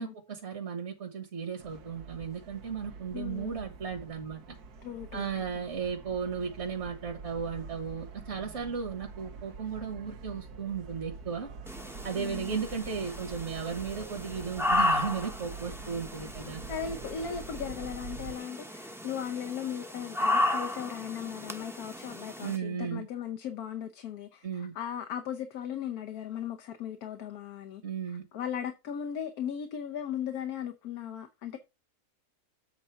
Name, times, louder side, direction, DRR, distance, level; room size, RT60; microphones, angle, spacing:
voice 1, 0.0-4.6 5.1-11.5 12.0-16.6 22.4-23.0 24.4-24.7 27.8-28.2, right 6 dB, 50° right, 1.7 m, -35 dB
sound 1, 1.6-18.4, right 4 dB, 85° right, 1.6 m, -46 dB
voice 2, 3.1-3.6 4.8-5.3 12.2-12.5 16.7-27.8 28.1-31.6, left 8 dB, 80° left, 1.3 m, -37 dB
sound 2, 11.7-22.6, left 2 dB, ahead, 0.8 m, -34 dB
8.2 x 4.0 x 5.6 m
omnidirectional pair, 1.6 m